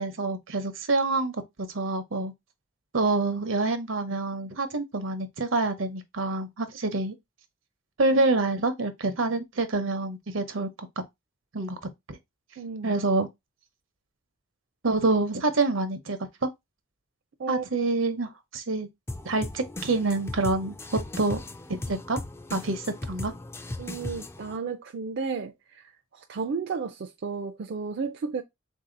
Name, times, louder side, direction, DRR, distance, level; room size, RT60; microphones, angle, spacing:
voice 1, 0.0-2.3 2.9-7.1 8.0-10.7 11.0-11.1 11.5-11.8 12.1-12.2 12.8-13.3 14.8-16.5 17.5-18.9 19.2-20.7 21.2-21.4 21.7-22.2 22.5-23.3, right 3 dB, 80° right, 0.8 m, -27 dB
voice 2, 12.6-13.1 17.4-17.9 23.8-28.4, right 5 dB, 60° right, 0.4 m, -33 dB
sound 1, 19.1-24.6, left 2 dB, 15° left, 0.3 m, -37 dB
3.8 x 2.7 x 3.8 m
head